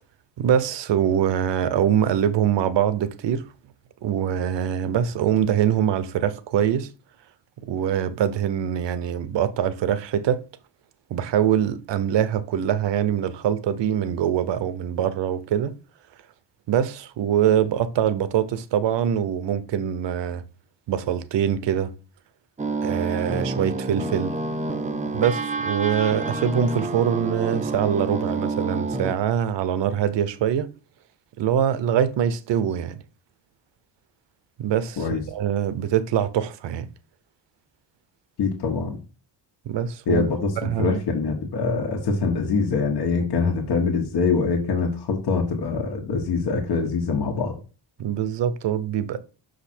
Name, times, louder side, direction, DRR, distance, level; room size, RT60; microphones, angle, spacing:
voice 1, 0.4-3.4 4.0-6.9 7.7-10.4 11.1-15.7 16.7-20.4 20.9-21.9 22.8-24.3 25.1-30.7 31.4-33.0 34.6-36.9 39.7-40.3 40.6-41.0 48.0-49.2, right 9 dB, 80° right, 0.9 m, -23 dB
sound 1, 22.6-29.1, right 3 dB, 15° right, 0.6 m, -28 dB
voice 2, 38.4-39.0 40.1-47.5, left 4 dB, 70° left, 1.4 m, -24 dB
6.2 x 5.2 x 4.3 m
wide cardioid pair, 175°, 42 cm